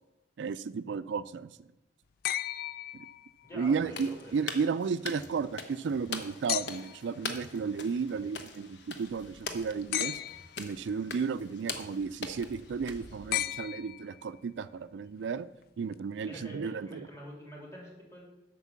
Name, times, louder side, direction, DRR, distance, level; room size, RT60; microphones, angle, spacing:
voice 1, 0.4-1.6 2.9-3.0 3.5-10.2 10.6-15.5 15.8-17.1, right 5 dB, 80° right, 14 dB, 0.4 m, -33 dB
sound 1, 2.2-3.6 6.5-7.1 9.9-10.7 13.3-14.4 15.9-16.0, left 13 dB, 55° left, 0.3 m, -35 dB
voice 2, 3.4-4.4 16.2-18.2, equal, 15° left, -2 dB, 2.8 m, -46 dB
sound 2, 3.7-5.5 5.9-7.7 8.1-9.9 10.3-12.1, equal, 85° left, 2.5 m, -60 dB
sound 3, 3.9-13.6, left 4 dB, 70° left, 1.0 m, -43 dB
8.2 x 5.9 x 7.2 m, 0.97 s
head